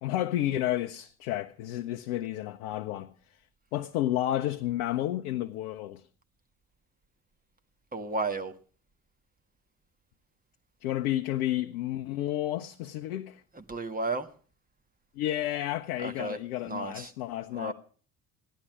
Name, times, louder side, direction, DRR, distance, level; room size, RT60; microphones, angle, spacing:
voice 1, 0.0-3.1 3.7-6.0 10.8-13.4 15.2-17.7, left 13 dB, 70° left, 0.9 m, -31 dB
voice 2, 7.9-8.5 13.5-14.3 16.0-17.1 17.5-17.7, right 3 dB, 20° right, 1.6 m, -33 dB
15.5 x 11.5 x 6.3 m
figure-of-eight pair, 55°, 45 cm